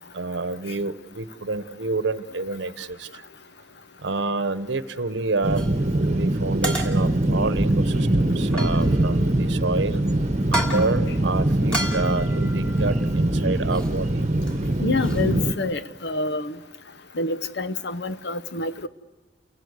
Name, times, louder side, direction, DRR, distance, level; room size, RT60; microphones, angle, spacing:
voice 1, 0.1-3.2 4.0-5.6 6.1-10.0 10.5-14.2, right 3 dB, 75° right, 14 dB, 1.0 m, -28 dB
sound 1, 5.4-15.5, right 1 dB, 40° right, 1.1 m, -23 dB
sound 2, 5.6-5.8 6.6-7.3 8.4-9.2 10.4-11.0 11.7-13.2 13.7-14.0 14.2-15.3, right 1 dB, 5° left, 3.0 m, -32 dB
voice 2, 14.8-16.5 17.2-18.9, left 3 dB, 65° left, 12 dB, 1.0 m, -27 dB
29.5 x 18.5 x 8.1 m, 1.3 s
head